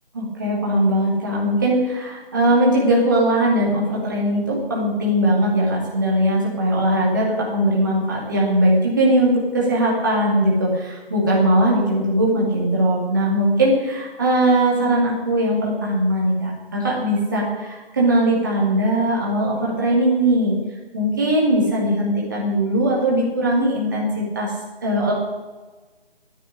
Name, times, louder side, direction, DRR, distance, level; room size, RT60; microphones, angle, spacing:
voice 1, 0.1-20.6 20.9-24.1 24.3-24.5 24.8-25.1, right 1 dB, 20° right, -4 dB, 2.4 m, -20 dB
10.0 x 9.2 x 9.7 m, 1.3 s
figure-of-eight pair, 180°, 31 cm